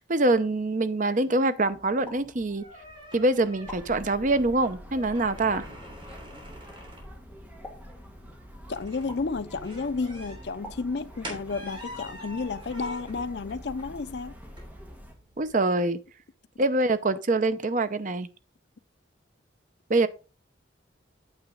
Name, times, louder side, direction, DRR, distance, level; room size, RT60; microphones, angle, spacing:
voice 1, 0.1-2.6 3.1-5.6 15.4-16.0 16.6-18.3 19.9-20.1, right 2 dB, 40° right, 0.7 m, -24 dB
sound 1, 1.7-15.5, equal, 25° right, 3.1 m, -47 dB
sound 2, 2.0-3.0 3.7-4.5 5.5-6.4 7.6-8.5 9.1-9.9 10.6-11.6, left 1 dB, 10° left, 2.3 m, -48 dB
sound 3, 3.6-15.1, equal, 10° right, 1.3 m, -46 dB
voice 2, 8.7-14.3, left 4 dB, 60° left, 0.5 m, -32 dB
9.0 x 6.5 x 3.9 m
head